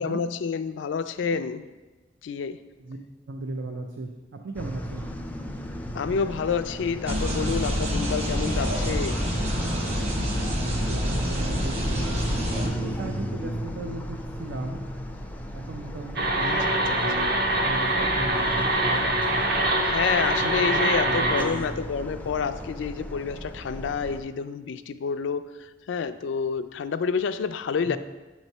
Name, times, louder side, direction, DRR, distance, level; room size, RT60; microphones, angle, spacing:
voice 1, 0.0-1.7 2.2-2.6 5.9-9.2 16.4-17.3 19.8-28.0, left 6 dB, 80° left, 11 dB, 0.3 m, -29 dB
voice 2, 3.3-4.1 4.4-5.1 10.5-14.8 15.5-19.5 20.4-21.7 27.9-28.0, right 2 dB, 90° right, 2 dB, 0.5 m, -36 dB
sound 1, 4.5-24.2, equal, 10° left, 0.3 m, -35 dB
sound 2, 7.1-12.7, equal, 35° right, 1.1 m, -27 dB
sound 3, 16.2-21.4, right 1 dB, 60° right, 0.9 m, -24 dB
7.9 x 3.1 x 5.3 m, 1.2 s
head